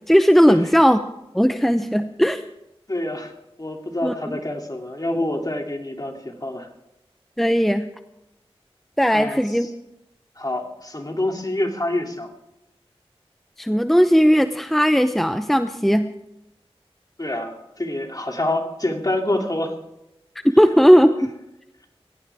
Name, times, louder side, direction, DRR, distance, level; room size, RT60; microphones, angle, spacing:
voice 1, 0.1-1.0 1.3-2.4 4.0-4.4 7.4-7.9 9.0-9.7 13.6-16.1 20.6-21.3, equal, ahead, 9 dB, 0.8 m, -17 dB
voice 2, 2.9-3.3 3.6-6.7 9.1-9.7 10.4-12.3 17.2-19.7, left 1 dB, 35° left, 2 dB, 2.8 m, -26 dB
21.0 x 17.0 x 3.6 m, 0.88 s
wide cardioid pair, 45°, 10 cm